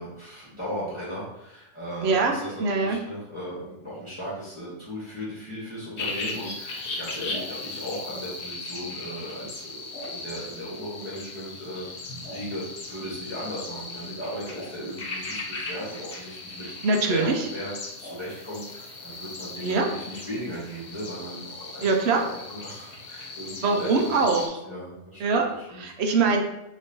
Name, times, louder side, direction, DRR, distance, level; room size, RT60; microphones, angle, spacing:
voice 1, 0.0-16.7 17.1-17.7 18.0-25.2 25.6-25.8, equal, 20° left, -8 dB, 1.3 m, -37 dB
voice 2, 2.0-3.0 16.8-17.5 19.6-19.9 21.8-22.2 23.6-24.6 25.2-26.4, right 4 dB, 60° right, 2 dB, 0.8 m, -23 dB
sound 1, 6.0-24.5, left 3 dB, 55° left, 1.0 m, -38 dB
5.3 x 3.0 x 2.7 m, 0.87 s
omnidirectional pair, 1.5 m